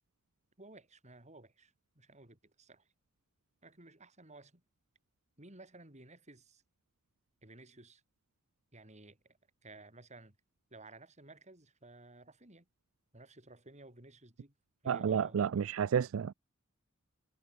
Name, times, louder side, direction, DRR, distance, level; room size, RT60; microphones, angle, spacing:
voice 1, 0.6-2.9 3.6-4.6 5.4-6.6 7.4-8.0 8.7-10.4 10.7-12.7 13.1-14.5 14.8-15.4, right 2 dB, 35° right, 5.1 m, -55 dB
voice 2, 14.9-16.3, right 7 dB, 70° right, 0.4 m, -31 dB
head